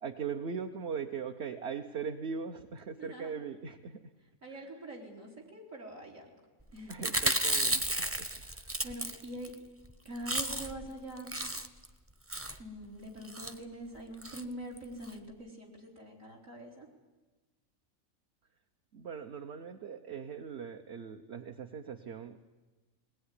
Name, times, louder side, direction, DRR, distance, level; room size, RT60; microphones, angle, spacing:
voice 1, 0.0-4.0 4.5-4.7 6.9-8.9 18.9-22.5, right 6 dB, 55° right, 5 dB, 1.2 m, -40 dB
voice 2, 3.0-3.3 4.4-6.3 6.7-7.1 8.8-9.5 10.0-11.4 12.6-16.9, right 1 dB, 70° right, -1 dB, 4.1 m, -44 dB
Chewing mastication, 6.9-9.5 9.9-10.0 10.2-10.9 11.2-11.9 12.3-12.6 13.2-13.5 14.2-14.4 14.8-14.9 15.0-15.1, right 1 dB, 10° right, 0.8 m, -32 dB
20.5 x 19.5 x 9.9 m, 1.2 s
omnidirectional pair, 1.4 m